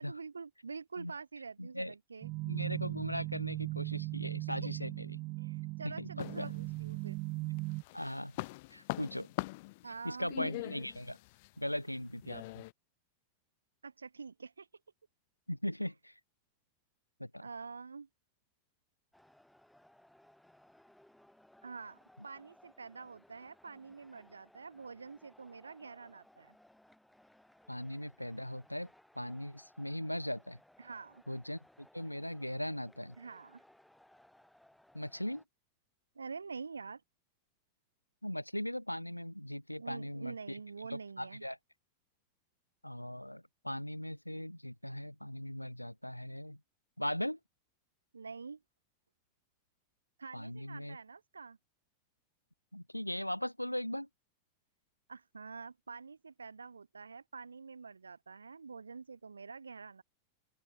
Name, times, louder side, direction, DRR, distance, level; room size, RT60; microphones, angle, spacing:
voice 1, 0.0-2.3 4.5-4.7 5.4-7.2 9.8-10.6 13.8-14.7 17.4-18.1 21.6-22.0 22.2-26.5 30.8-31.2 33.2-33.6 36.1-37.0 39.8-41.4 48.1-48.6 50.2-51.6 55.1-60.0, right 5 dB, 75° right, 3.1 m, -47 dB
voice 2, 1.6-1.9 2.4-5.2 5.8-6.5 7.9-8.3 8.7-9.3 10.0-11.2 11.6-12.6 15.5-16.1 17.2-17.5 27.7-28.9 29.1-30.6 31.3-33.2 34.9-35.4 38.2-40.6 40.9-41.6 42.8-46.6 47.0-47.4 50.3-51.0 52.7-54.1, left 1 dB, 90° left, 1.5 m, -39 dB
sound 1, 2.2-7.8, right 24 dB, 40° right, 1.1 m, -38 dB
sound 2, 6.2-7.2 7.6-12.7, left 23 dB, 50° left, 1.6 m, -42 dB
sound 3, 19.1-35.4, left 1 dB, ahead, 7.1 m, -64 dB
open air
figure-of-eight pair, 90°, 0 cm